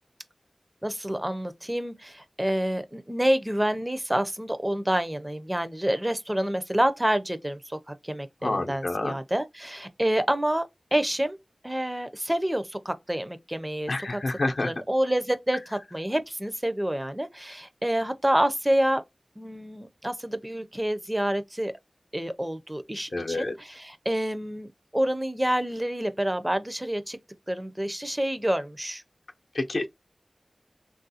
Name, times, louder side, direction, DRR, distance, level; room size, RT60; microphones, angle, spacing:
voice 1, 0.8-11.4 11.6-13.9 14.6-19.0 19.4-21.7 22.1-27.2 27.5-29.0, right 1 dB, 15° right, 0.4 m, -28 dB
voice 2, 8.4-9.2 13.9-14.7 23.1-23.5 29.5-29.9, left 2 dB, 75° left, 0.5 m, -28 dB
3.3 x 2.4 x 2.6 m
wide cardioid pair, 55°, 0 cm